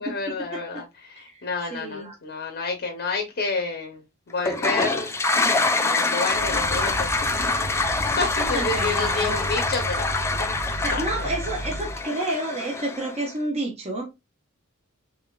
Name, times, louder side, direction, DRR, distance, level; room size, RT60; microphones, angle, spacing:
voice 1, 0.0-4.0 4.3-5.1 5.8-7.3 7.7-10.1 10.4-11.1, left 4 dB, 50° left, 0.8 m, -29 dB
voice 2, 0.5-0.8 1.2-1.3 1.7-2.1 8.4-9.4 10.8-14.0, right 2 dB, 30° right, 0.9 m, -30 dB
Toilet flush, 4.4-13.3, left 3 dB, 10° left, 0.3 m, -25 dB
sound 1, 6.3-12.0, right 1 dB, 45° right, 0.6 m, -34 dB
3.6 x 3.4 x 2.3 m
head